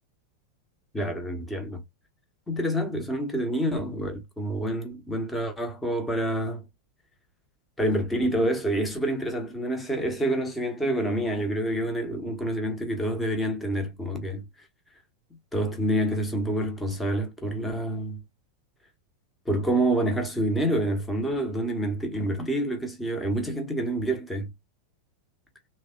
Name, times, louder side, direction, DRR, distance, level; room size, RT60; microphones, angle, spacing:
voice 1, 0.9-1.8 2.5-6.7 7.8-14.5 15.5-18.2 19.5-24.5, right 1 dB, 10° left, 0.9 m, -27 dB
3.3 x 2.2 x 2.3 m
figure-of-eight pair, 90°, 0 cm